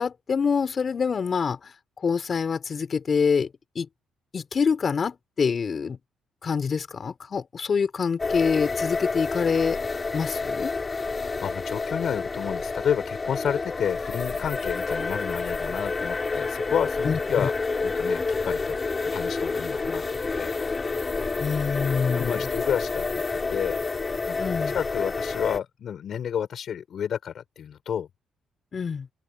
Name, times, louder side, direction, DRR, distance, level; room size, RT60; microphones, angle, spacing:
voice 1, 0.0-3.5 3.7-3.9 4.3-6.0 6.4-9.8 10.1-10.7 17.0-17.5 21.4-22.4 24.4-24.8 28.7-29.1, left 6 dB, 45° left, 4.4 m, -26 dB
sound 1, 8.2-25.6, left 4 dB, 30° left, 6.9 m, -29 dB
voice 2, 11.2-17.5 17.8-18.8 19.1-20.5 22.2-23.0 23.5-23.8 24.3-24.4 24.7-28.1, left 8 dB, 60° left, 5.3 m, -30 dB
open air
cardioid pair, 90°, 0 cm